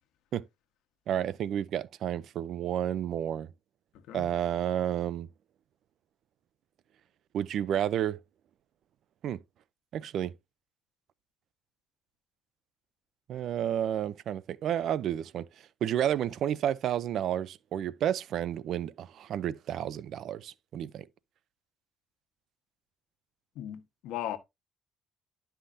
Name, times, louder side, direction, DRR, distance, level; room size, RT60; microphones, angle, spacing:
voice 1, 1.1-3.5 4.1-5.3 7.3-8.2 9.2-9.4 9.9-10.3 13.3-15.5 15.8-21.1, right 10 dB, 65° right, 0.5 m, -31 dB
voice 2, 23.5-24.4, left 12 dB, 85° left, 1.2 m, -37 dB
11.5 x 5.6 x 2.7 m
cardioid pair, 115°, 0 cm